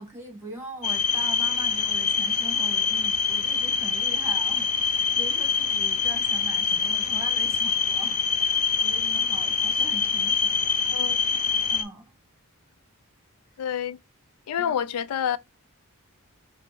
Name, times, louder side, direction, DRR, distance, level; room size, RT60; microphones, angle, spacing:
voice 1, 0.0-10.7 11.7-12.1 14.6-14.8, right 1 dB, 10° right, 1.2 m, -41 dB
sound 1, 0.8-11.8, left 6 dB, 30° left, 0.7 m, -25 dB
voice 2, 13.6-14.0 14.5-15.4, left 8 dB, 85° left, 0.3 m, -28 dB
5.3 x 2.0 x 4.3 m
head